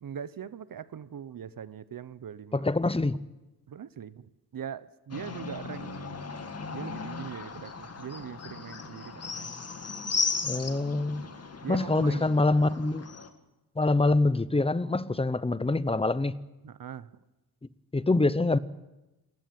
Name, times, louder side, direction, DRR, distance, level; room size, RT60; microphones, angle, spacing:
voice 1, 0.0-2.6 3.7-6.3 6.7-9.5 11.6-12.8 16.6-17.1, right 8 dB, 60° right, 1.0 m, -41 dB
voice 2, 2.5-3.2 10.4-11.3 11.7-13.0 13.8-16.3 17.9-18.6, left 2 dB, 15° left, 0.8 m, -25 dB
sound 1, 5.1-13.3, left 4 dB, 40° left, 2.2 m, -36 dB
27.5 x 14.5 x 9.5 m
wide cardioid pair, 125°, 38 cm